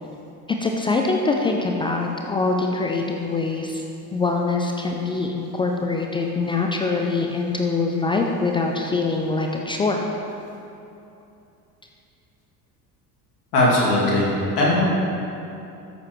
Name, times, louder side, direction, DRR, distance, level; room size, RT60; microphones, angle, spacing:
voice 1, 0.5-3.8 4.1-10.0, left 3 dB, 10° left, 1 dB, 0.3 m, -23 dB
voice 2, 13.5-14.9, left 1 dB, 70° left, -6 dB, 2.4 m, -19 dB
13.0 x 7.7 x 3.1 m, 2.8 s
figure-of-eight pair, 65°, 48 cm